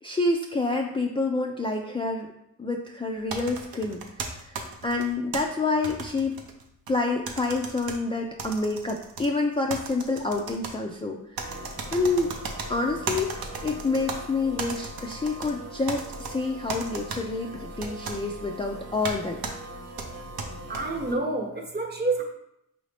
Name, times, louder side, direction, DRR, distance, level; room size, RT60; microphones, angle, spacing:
voice 1, 0.0-2.3 2.6-4.5 4.8-6.4 6.9-11.2 11.4-11.5 11.9-12.3 12.7-19.4, left 3 dB, 15° left, 0 dB, 0.3 m, -28 dB
sound 1, 3.3-5.4 5.8-7.0 7.3-8.0 8.4-9.3 9.7-10.7 11.4-12.7 13.1-14.2 14.6-15.5 15.9-16.3 16.7-17.2 17.8-18.2 19.0-19.2 19.4-19.5 20.0-20.8, right 4 dB, 80° right, 0.7 m, -35 dB
sound 2, 11.4-21.2, right 1 dB, 45° right, 0.6 m, -42 dB
voice 2, 20.7-22.2, right 2 dB, 30° right, 0 dB, 0.9 m, -28 dB
4.8 x 2.6 x 3.3 m, 0.78 s
cardioid pair, 80°, 36 cm